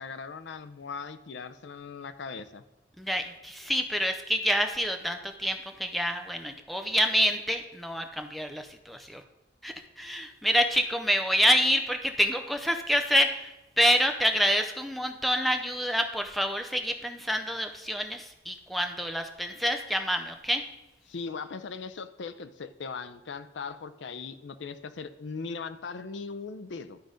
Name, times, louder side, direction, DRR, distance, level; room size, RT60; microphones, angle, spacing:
voice 1, 0.0-2.6 21.1-27.0, left 5 dB, 85° left, 12 dB, 0.5 m, -39 dB
voice 2, 3.0-9.2 9.6-20.6, equal, ahead, 6 dB, 0.5 m, -27 dB
11.5 x 3.9 x 5.0 m, 0.99 s
head